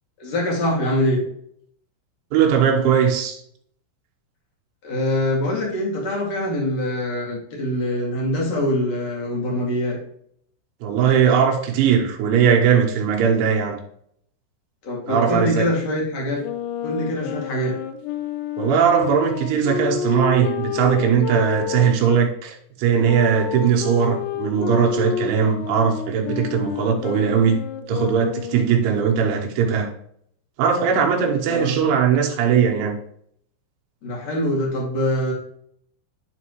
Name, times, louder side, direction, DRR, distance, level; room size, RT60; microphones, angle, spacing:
voice 1, 0.2-1.2 4.8-10.0 14.8-16.4 16.8-17.7 31.5-31.8 34.0-35.3, left 1 dB, 45° left, 2.5 m, -24 dB
voice 2, 2.3-3.4 10.8-13.8 15.1-15.7 18.6-27.6 27.9-29.9 30.6-33.0, right 7 dB, 75° right, 3.5 m, -19 dB
Wind instrument woodwind instrument, 16.4-22.2 23.0-28.8, left 8 dB, 85° left, 3.0 m, -29 dB
11.0 x 4.1 x 3.0 m
omnidirectional pair, 5.7 m